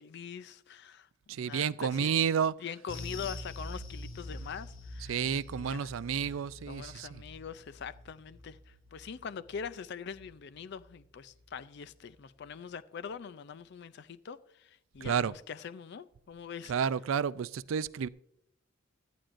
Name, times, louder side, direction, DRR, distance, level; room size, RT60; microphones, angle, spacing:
voice 1, 0.0-2.1 2.6-5.2 5.5-5.9 6.7-16.7, left 6 dB, 55° left, 0.4 m, -43 dB
voice 2, 1.3-2.6 5.0-7.2 15.0-15.3 16.7-18.1, right 7 dB, 80° right, 0.4 m, -31 dB
sound 1, 2.9-11.6 11.8-12.1 12.4-12.5, left 2 dB, 85° left, 1.7 m, -46 dB
17.5 x 12.5 x 2.5 m
head